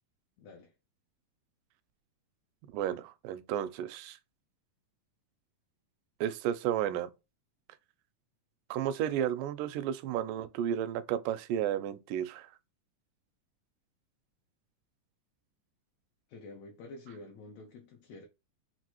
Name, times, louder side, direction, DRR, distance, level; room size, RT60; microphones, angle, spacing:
voice 1, 0.4-0.7 16.3-18.3, left 3 dB, 75° left, 1.6 m, -48 dB
voice 2, 2.7-4.2 6.2-7.1 8.7-12.5, right 10 dB, 85° right, 2.1 m, -32 dB
6.0 x 2.5 x 2.9 m
omnidirectional pair, 3.8 m